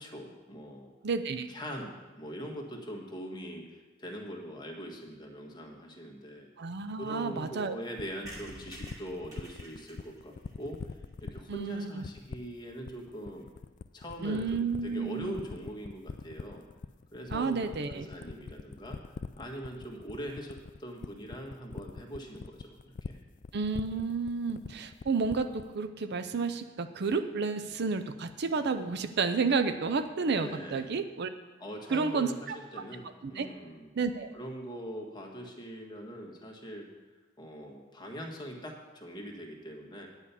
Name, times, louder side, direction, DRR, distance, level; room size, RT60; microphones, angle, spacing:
voice 1, 0.0-0.9 1.5-6.5 6.9-10.8 11.2-13.5 13.9-16.6 17.1-23.2 30.4-30.9 31.6-33.9 34.3-36.9 37.4-40.1, equal, 20° left, 1 dB, 1.5 m, -42 dB
voice 2, 1.0-1.5 6.6-7.7 11.5-12.0 14.2-15.3 17.3-18.1 23.5-31.3 31.9-32.8 33.2-33.5 34.0-34.3, right 4 dB, 55° right, 9 dB, 0.5 m, -31 dB
sound 1, 8.0-25.7, left 4 dB, 40° left, 0.3 m, -42 dB
sound 2, 8.3-11.9 12.4-12.5 12.7-12.8 13.0-13.1 13.3-13.5, right 1 dB, 20° right, 2.4 m, -51 dB
9.7 x 5.7 x 8.3 m, 1.3 s
head